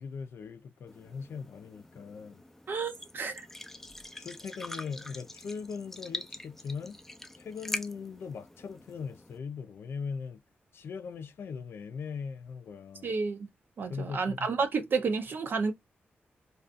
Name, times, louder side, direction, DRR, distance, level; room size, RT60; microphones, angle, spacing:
voice 1, 0.0-2.4 4.2-7.0 7.4-10.4 10.7-13.1 13.9-14.5, left 5 dB, 75° left, 0.4 m, -40 dB
sound 1, 0.9-9.4, left 1 dB, 10° left, 0.4 m, -44 dB
voice 2, 2.7-3.5 13.0-13.4 13.8-15.7, right 4 dB, 60° right, 0.4 m, -30 dB
2.4 x 2.3 x 2.4 m
cardioid pair, 100°, 4 cm